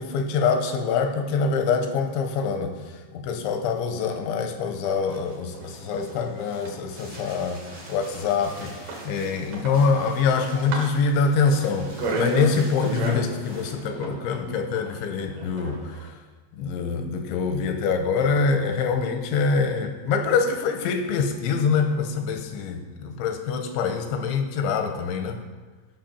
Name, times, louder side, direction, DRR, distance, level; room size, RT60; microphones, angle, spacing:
voice 1, 0.0-2.8 3.1-7.6 7.9-8.7 9.0-16.1 16.6-25.4, left 5 dB, 85° left, 5 dB, 3.2 m, -25 dB
sound 1, 4.5-16.1, right 2 dB, 55° right, 2.7 m, -36 dB
sound 2, 4.9-13.8, right 1 dB, 85° right, 0.8 m, -46 dB
15.5 x 6.0 x 4.3 m, 1.4 s
omnidirectional pair, 5.3 m